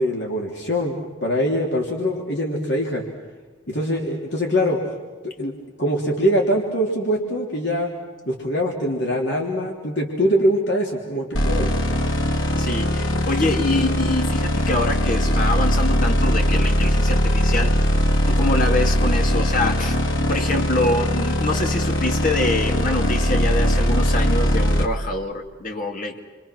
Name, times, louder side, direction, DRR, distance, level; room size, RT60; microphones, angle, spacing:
voice 1, 0.0-3.0 3.7-4.8 5.2-7.9 8.2-11.7, equal, 60° left, -1 dB, 3.5 m, -23 dB
sound 1, 11.3-24.9, equal, 90° left, 2.8 m, -20 dB
voice 2, 12.6-17.8 18.3-20.0 20.3-26.2, left 2 dB, 45° left, 3 dB, 2.5 m, -25 dB
29.0 x 25.5 x 6.2 m, 1.3 s
head